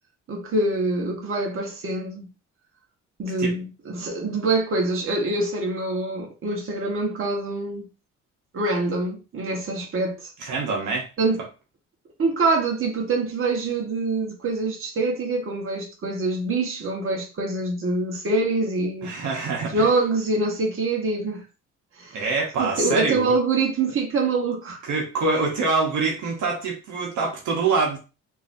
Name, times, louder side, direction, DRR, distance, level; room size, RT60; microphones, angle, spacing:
voice 1, 0.3-2.3 3.2-7.9 8.5-10.3 11.2-11.4 12.2-19.1 19.7-21.4 22.0-22.2 22.6-24.8, right 3 dB, 45° right, 1.4 m, -25 dB
voice 2, 10.4-11.1 19.0-19.9 22.1-23.3 24.8-28.0, right 4 dB, 75° right, 1.1 m, -25 dB
3.9 x 2.8 x 2.7 m
cardioid pair, 90°, 30 cm